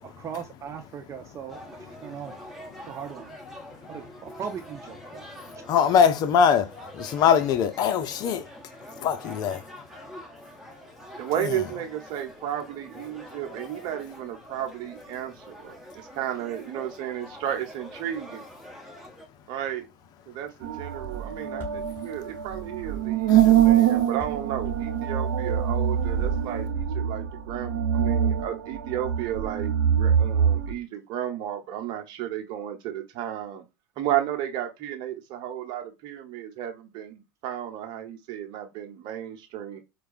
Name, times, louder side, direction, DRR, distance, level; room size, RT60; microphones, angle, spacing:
voice 1, 0.0-2.3 2.9-3.3 3.9-5.3, right 7 dB, 30° right, 0.4 m, -38 dB
sound 1, 1.5-19.3, equal, ahead, 1.1 m, -45 dB
voice 2, 1.8-2.4 2.7-2.9 3.9-4.0 5.5-8.5 9.0-9.6 11.4-11.6 23.3-23.7, left 7 dB, 45° left, 0.6 m, -24 dB
voice 3, 11.2-18.5 19.5-19.9 20.3-33.6 34.0-39.8, right 11 dB, 50° right, 0.9 m, -33 dB
sound 2, 20.6-30.7, right 9 dB, 80° right, 0.7 m, -24 dB
Thump thud, 21.6-25.6, left 5 dB, 25° left, 2.1 m, -45 dB
4.6 x 2.2 x 2.4 m
hypercardioid pair, 90°, 9 cm